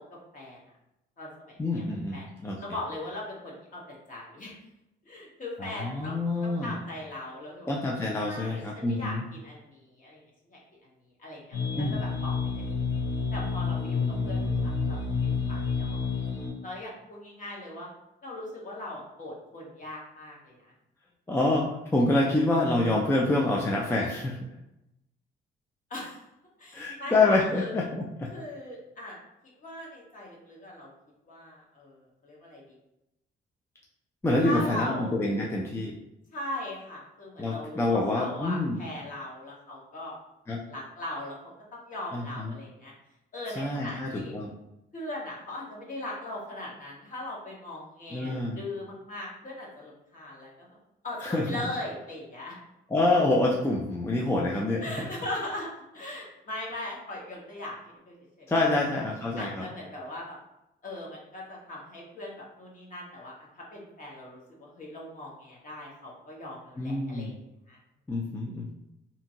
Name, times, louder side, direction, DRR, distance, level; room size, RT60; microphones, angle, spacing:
voice 1, 0.1-0.6 1.2-1.8 2.1-2.3 2.6-4.6 5.0-7.7 8.2-10.6 11.2-12.9 13.3-16.1 16.6-17.9 18.2-20.7 25.9-26.2 26.6-27.7 28.3-29.2 29.6-30.9 31.3-32.7 34.4-35.2 36.3-40.2 40.4-41.4 41.7-42.9 43.3-44.3 44.9-50.8 51.0-52.5 54.8-58.8 59.4-60.4 60.8-67.4 67.7-67.8, left 1 dB, 40° left, -3 dB, 1.1 m, -39 dB
voice 2, 1.6-2.6 5.6-6.7 7.7-9.2 11.8-12.0 21.3-24.4 26.7-28.3 34.2-36.0 37.4-38.8 40.5-40.6 42.1-42.6 43.6-44.5 48.1-48.6 51.2-51.6 52.9-55.1 58.5-59.7 66.8-67.4 68.1-68.7, left 2 dB, 10° left, -3 dB, 0.4 m, -27 dB
sound 1, 11.5-16.5, left 4 dB, 85° left, 1.2 m, -29 dB
2.7 x 2.5 x 2.7 m, 0.88 s
cardioid pair, 90°, 20 cm